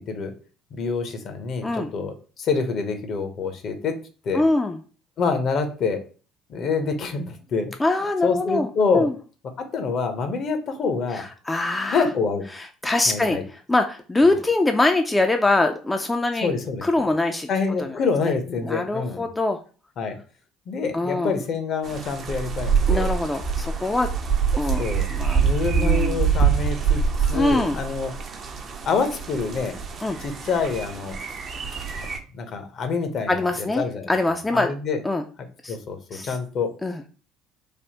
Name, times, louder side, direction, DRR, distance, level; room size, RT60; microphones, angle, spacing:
voice 1, 0.7-3.9 4.2-4.4 5.2-6.0 6.5-7.7 8.2-9.1 9.7-11.2 11.9-12.4 13.1-13.4 16.4-17.0 17.5-19.3 20.0-20.1 20.7-23.1 24.8-25.1 25.4-28.1 28.8-29.8 30.2-31.2 32.0-32.1 32.3-34.1 34.5-35.0 35.7-36.7, left 4 dB, 55° left, 7 dB, 0.7 m, -26 dB
voice 2, 4.3-4.8 7.8-8.7 8.9-9.1 11.1-12.0 12.5-16.5 16.8-17.5 17.8-18.0 18.6-19.6 20.9-21.3 22.9-24.1 24.5-24.8 25.1-25.5 25.8-26.2 27.3-27.8 30.0-30.2 33.3-34.7 35.0-35.2 35.6-35.8 36.1-36.4 36.8-37.0, left 2 dB, 15° left, 5 dB, 0.3 m, -23 dB
sound 1, 21.8-32.2, right 6 dB, 50° right, 0.5 m, -25 dB
3.3 x 2.0 x 2.8 m, 0.37 s
hypercardioid pair, 75°, 0 cm